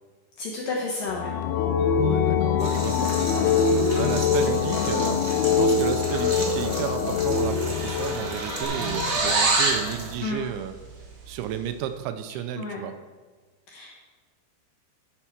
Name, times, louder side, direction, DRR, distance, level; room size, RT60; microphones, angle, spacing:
voice 1, 0.4-1.3 10.2-10.5 12.6-12.8 13.7-13.9, left 3 dB, 65° left, -3 dB, 2.3 m, -31 dB
sound 1, 1.1-8.6, left 6 dB, 90° left, 2.2 m, -23 dB
voice 2, 2.0-5.2 5.6-10.8 11.3-13.0, right 10 dB, 85° right, 10 dB, 2.9 m, -33 dB
sound 2, 2.6-10.2, right 1 dB, 35° right, 0.8 m, -36 dB
sound 3, 6.7-6.9 7.2-9.9, right 3 dB, 55° right, 1.6 m, -26 dB
10.5 x 5.5 x 5.8 m, 1.4 s
omnidirectional pair, 5.3 m